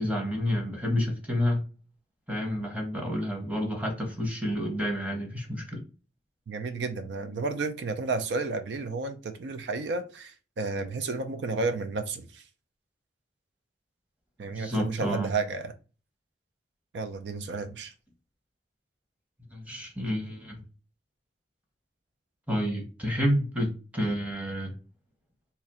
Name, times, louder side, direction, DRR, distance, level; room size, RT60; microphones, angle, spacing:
voice 1, 0.0-1.6 2.3-5.8 14.5-15.3 19.5-20.6 22.5-24.7, equal, 10° right, 1 dB, 0.9 m, -29 dB
voice 2, 6.5-12.5 14.4-15.7 16.9-17.9, right 3 dB, 75° right, 8 dB, 0.4 m, -32 dB
2.8 x 2.5 x 4.1 m, 0.35 s
head